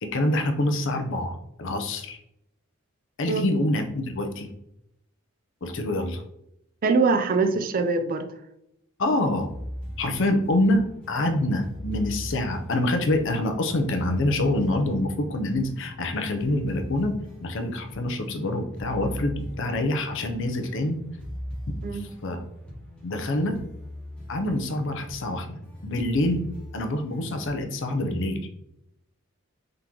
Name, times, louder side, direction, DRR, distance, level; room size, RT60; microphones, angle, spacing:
voice 1, 0.0-2.2 3.2-4.5 5.6-6.2 9.0-9.5 10.0-21.0 21.7-22.4 23.0-23.6 24.3-26.4 26.7-28.5, left 1 dB, 60° left, 6 dB, 0.6 m, -26 dB
voice 2, 6.8-8.3 21.8-22.1, right 4 dB, 40° right, 8 dB, 0.4 m, -23 dB
sound 1, 9.5-27.6, equal, 5° left, 1.0 m, -40 dB
3.8 x 2.9 x 3.7 m, 0.80 s
head